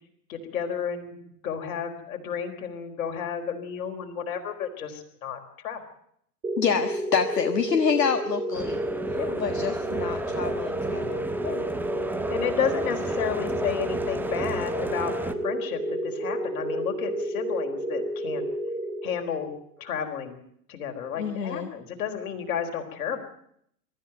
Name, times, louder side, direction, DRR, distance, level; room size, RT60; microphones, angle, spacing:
voice 1, 0.3-1.2 1.4-5.8 9.1-9.4 9.9-10.0 11.4-11.6 12.3-18.4 19.0-19.5 19.8-20.4 20.7-23.2, left 7 dB, 55° left, 5 dB, 4.5 m, -32 dB
sound 1, 6.4-19.6, right 1 dB, 85° right, 2.4 m, -31 dB
voice 2, 6.6-8.8 9.4-11.3 21.2-21.7, left 6 dB, 70° left, 7 dB, 1.7 m, -27 dB
sound 2, 8.5-15.3, right 2 dB, 5° right, 1.3 m, -35 dB
23.5 x 14.0 x 9.2 m, 0.68 s
figure-of-eight pair, 95°, 50 cm